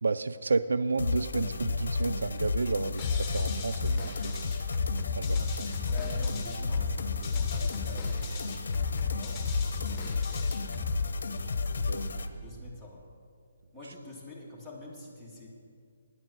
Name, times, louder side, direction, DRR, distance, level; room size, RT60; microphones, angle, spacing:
voice 1, 0.0-4.5 5.1-5.7 11.9-12.0, right 3 dB, 75° right, 14 dB, 0.3 m, -31 dB
sound 1, 1.0-12.3, left 4 dB, 70° left, 0.8 m, -32 dB
sound 2, 3.0-11.0, left 5 dB, 15° left, 1.7 m, -37 dB
voice 2, 5.9-11.0 11.6-13.1 13.7-15.5, left 2 dB, 5° right, -5 dB, 2.2 m, -47 dB
10.0 x 7.4 x 7.9 m, 2.4 s
figure-of-eight pair, 145°, 0 cm